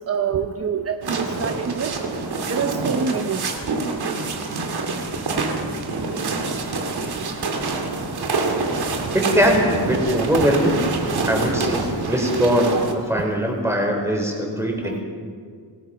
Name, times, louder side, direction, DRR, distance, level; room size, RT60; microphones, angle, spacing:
voice 1, 0.1-1.9 2.5-3.5 14.8-15.0, right 6 dB, 35° right, 7 dB, 0.9 m, -26 dB
sound 1, 1.0-12.9, right 3 dB, 60° right, 2.8 m, -26 dB
voice 2, 9.1-10.8 11.3-15.0, equal, 5° right, 0 dB, 4.5 m, -21 dB
26.5 x 20.0 x 5.8 m, 2.1 s
wide cardioid pair, 170°, 43 cm